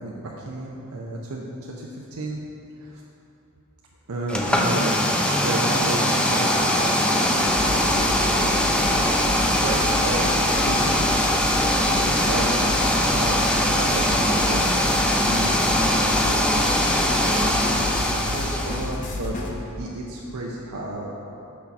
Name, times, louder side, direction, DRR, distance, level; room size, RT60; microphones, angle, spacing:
voice 1, 0.0-2.4 2.8-3.0 4.1-5.0 5.4-6.9 7.2-8.6 9.4-11.1 11.6-12.8 13.1-16.8 17.1-17.4 18.0-19.5 19.8-21.1, right 2 dB, 85° right, -3 dB, 0.6 m, -32 dB
sound 1, 4.3-18.9, left 1 dB, 5° left, 0.4 m, -21 dB
sound 2, 7.4-19.5, left 2 dB, 35° left, 0.7 m, -31 dB
6.1 x 4.2 x 5.8 m, 2.7 s
head